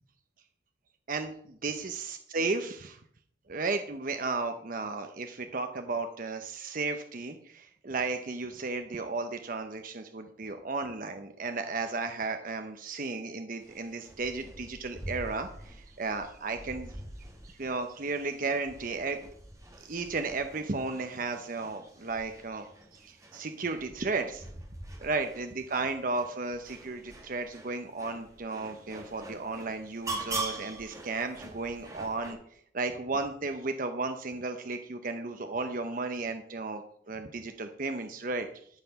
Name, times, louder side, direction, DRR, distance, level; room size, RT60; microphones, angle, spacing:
voice 1, 1.1-2.0 2.3-3.0 3.5-16.9 17.4-19.2 19.8-24.5 25.0-32.4 32.7-38.5, right 3 dB, 45° right, 7 dB, 0.8 m, -34 dB
sound 1, 13.6-32.3, right 2 dB, 15° right, 2.4 m, -44 dB
13.5 x 5.7 x 5.8 m, 0.63 s
head